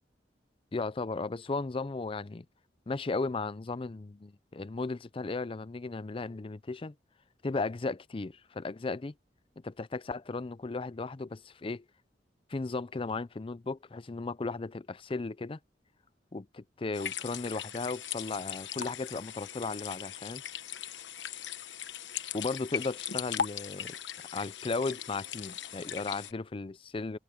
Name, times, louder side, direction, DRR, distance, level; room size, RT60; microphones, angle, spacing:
voice 1, 0.7-2.5 2.9-6.9 7.4-9.1 9.6-11.8 12.5-15.6 16.3-20.4 22.3-24.0 24.3-27.2, left 3 dB, 30° left, 0.5 m, -35 dB
sound 1, 16.9-26.3, left 9 dB, 85° left, 1.1 m, -39 dB
open air
head